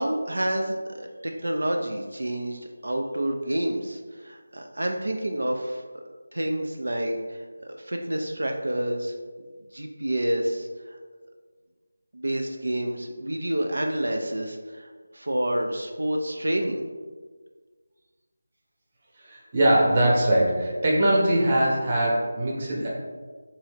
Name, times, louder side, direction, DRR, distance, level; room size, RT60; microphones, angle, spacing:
voice 1, 0.0-6.0 6.3-9.1 9.7-11.0 12.1-16.8, right 1 dB, 85° right, 3 dB, 0.4 m, -29 dB
voice 2, 19.2-22.9, right 1 dB, 30° right, -4 dB, 0.8 m, -22 dB
3.8 x 2.7 x 3.4 m, 1.5 s
figure-of-eight pair, 170°, 0 cm